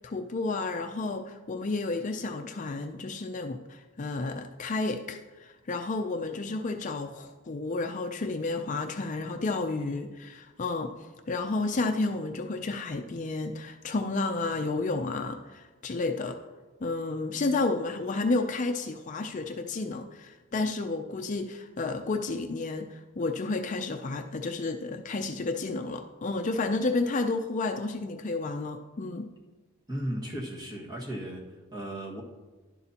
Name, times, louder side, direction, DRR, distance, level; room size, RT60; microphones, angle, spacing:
voice 1, 0.0-16.4 16.8-29.3, left 3 dB, 35° left, 5 dB, 0.4 m, -31 dB
voice 2, 29.9-32.2, right 1 dB, 20° right, -3 dB, 1.7 m, -36 dB
11.5 x 11.0 x 2.9 m, 1.3 s
head